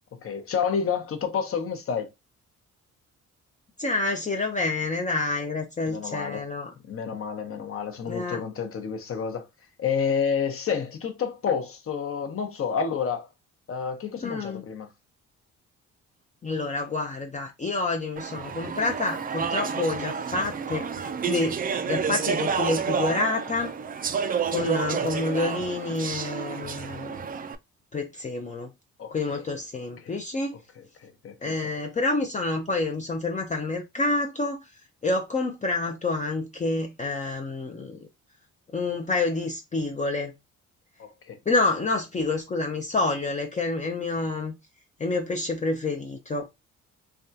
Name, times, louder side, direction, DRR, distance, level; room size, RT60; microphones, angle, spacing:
voice 1, 0.1-2.1 5.9-6.5 6.9-9.5 9.8-13.3 13.7-14.9 25.0-25.1 29.0-29.4 30.0-30.2 30.5-31.7 41.0-41.4, left 6 dB, 45° left, 0.8 m, -30 dB
voice 2, 3.8-6.7 8.1-8.4 14.2-14.6 16.4-23.7 24.5-27.2 27.9-28.7 29.1-30.6 31.4-34.6 35.0-38.1 38.7-40.3 41.5-44.5 45.0-46.5, left 3 dB, 25° left, 0.5 m, -28 dB
Speech / Chatter, 18.2-27.5, right 6 dB, 30° right, 0.4 m, -30 dB
3.4 x 2.3 x 2.7 m
cardioid pair, 90°, 30 cm